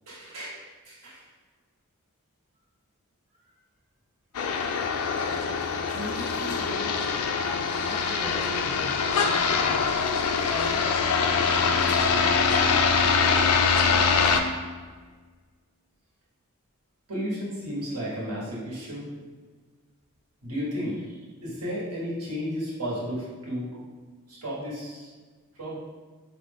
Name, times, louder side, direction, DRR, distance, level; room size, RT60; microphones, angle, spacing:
voice 1, 0.1-0.6 0.8-1.2 17.1-19.1 20.4-23.8 24.3-25.1 25.6-25.8, equal, 85° right, -7 dB, 1.4 m, -33 dB
sound 1, 4.3-14.4, left 5 dB, 80° left, 0.4 m, -24 dB
voice 2, 5.9-7.1 7.8-9.9 10.5-12.5, equal, 30° right, -9 dB, 1.4 m, -39 dB
4.8 x 2.5 x 3.5 m, 1.4 s
head